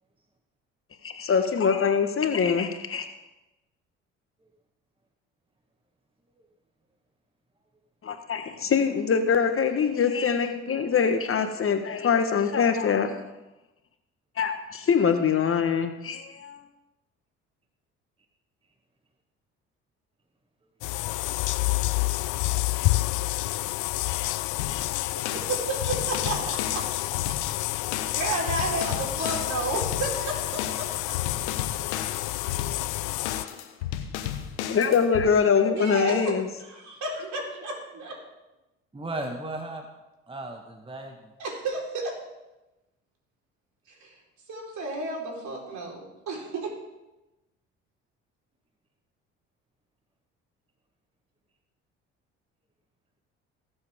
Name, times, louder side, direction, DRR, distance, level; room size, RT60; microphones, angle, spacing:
voice 1, 1.0-3.0 8.0-13.1 14.4-16.6 34.7-36.5, left 6 dB, 40° left, 7 dB, 1.4 m, -24 dB
sound 1, 20.8-33.4, left 20 dB, 65° left, 0.5 m, -29 dB
sound 2, 24.6-35.3, left 10 dB, 85° left, 1.1 m, -34 dB
voice 2, 25.1-26.9 28.0-30.9 35.7-38.1 41.4-42.1 43.9-44.1 44.5-46.7, right 3 dB, 60° right, -1 dB, 4.4 m, -32 dB
voice 3, 38.9-39.8 40.3-41.1, right 2 dB, 15° right, 3 dB, 1.6 m, -35 dB
19.5 x 7.9 x 3.7 m, 1.0 s
hypercardioid pair, 60°, 33 cm